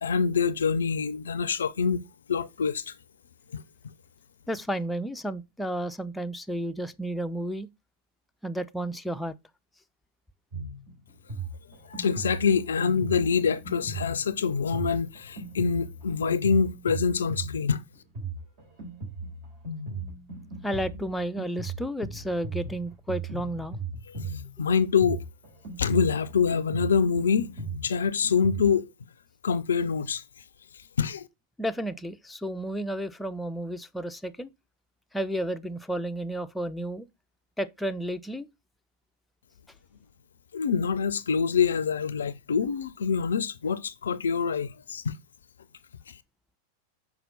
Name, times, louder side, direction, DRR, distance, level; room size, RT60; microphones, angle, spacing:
voice 1, 0.0-2.0 2.3-2.9 3.5-3.6 11.9-17.8 24.6-25.2 25.8-27.5 27.8-28.9 29.4-30.2 31.0-31.3 40.5-45.1, left 6 dB, 65° left, 0.5 m, -25 dB
voice 2, 4.5-7.7 8.4-9.3 20.6-23.8 31.6-34.5 35.1-37.1 37.6-38.5, right 1 dB, 5° left, 0.5 m, -32 dB
Drum kit, 10.5-28.7, right 3 dB, 50° right, 3.5 m, -38 dB
5.8 x 4.5 x 5.3 m
figure-of-eight pair, 90°, 0 cm